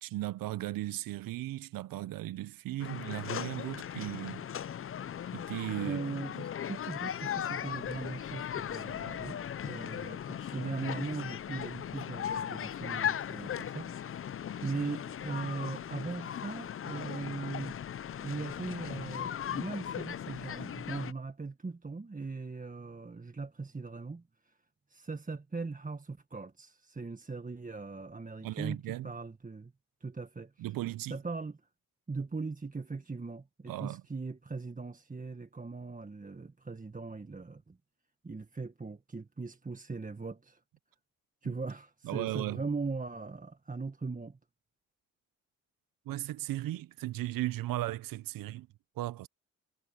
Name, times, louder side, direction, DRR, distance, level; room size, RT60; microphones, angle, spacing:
voice 1, 0.0-4.5 5.3-6.0 28.4-29.1 30.6-31.2 33.7-34.0 41.4-41.5 42.0-42.6 46.1-48.7 49.0-49.3, right 16 dB, 70° right, 0.7 m, -36 dB
sound 1, 2.8-21.1, left 9 dB, 40° left, 0.6 m, -38 dB
voice 2, 5.8-9.4 9.6-14.3 14.6-17.8 18.2-24.5 24.9-29.7 30.0-30.7 31.1-31.6 32.1-37.8 38.2-40.6 41.4-44.4, right 4 dB, 25° right, 1.5 m, -39 dB
supercardioid pair, 55°, 35 cm